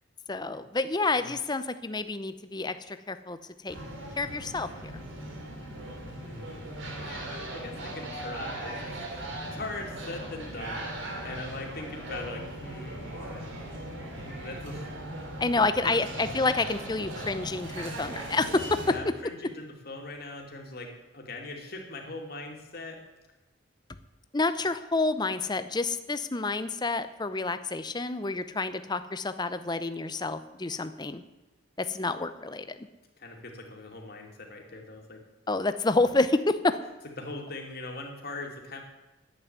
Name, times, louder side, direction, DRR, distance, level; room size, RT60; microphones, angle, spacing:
voice 1, 0.3-3.4 3.6-3.8 4.2-4.9 14.2-14.3 15.4-19.0 24.3-31.2 31.8-32.9 35.5-36.8, left 3 dB, 20° left, 11 dB, 0.7 m, -28 dB
sound 1, 3.7-18.9, right 1 dB, 75° right, 3.0 m, -39 dB
voice 2, 6.2-13.5 14.2-14.9 15.8-15.9 18.9-23.0 33.2-35.2 37.2-38.8, left 2 dB, 50° left, 2 dB, 2.6 m, -41 dB
11.0 x 8.6 x 9.3 m, 1.1 s
head